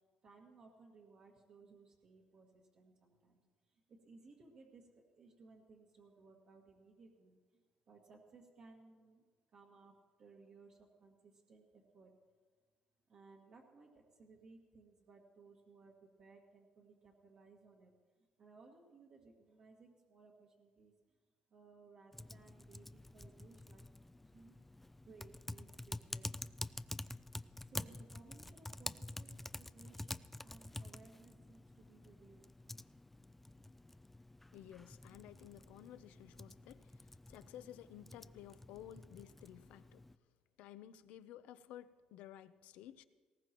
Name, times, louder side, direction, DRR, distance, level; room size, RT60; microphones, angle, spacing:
voice 1, 0.2-3.4 3.7-9.2 9.5-12.1 13.1-17.9 18.4-20.9 21.5-23.8 24.2-24.6 25.0-26.4 27.6-32.8, right 4 dB, 55° right, -2 dB, 2.0 m, -62 dB
Typing, 22.1-40.2, left 1 dB, 10° left, 0.3 m, -49 dB
voice 2, 34.5-36.8 37.3-40.0 40.6-43.0, left 11 dB, 85° left, 13 dB, 0.6 m, -54 dB
19.5 x 18.0 x 3.0 m, 1.4 s
cardioid pair, 125°, 2 cm